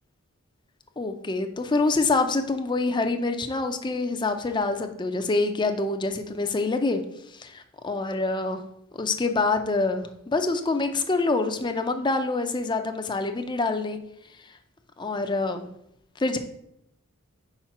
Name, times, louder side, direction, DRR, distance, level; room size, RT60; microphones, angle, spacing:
voice 1, 1.0-7.0 7.3-8.6 9.0-14.0 15.0-15.7 16.2-16.4, left 3 dB, 20° left, 6 dB, 0.5 m, -26 dB
4.7 x 4.4 x 5.9 m, 0.78 s
head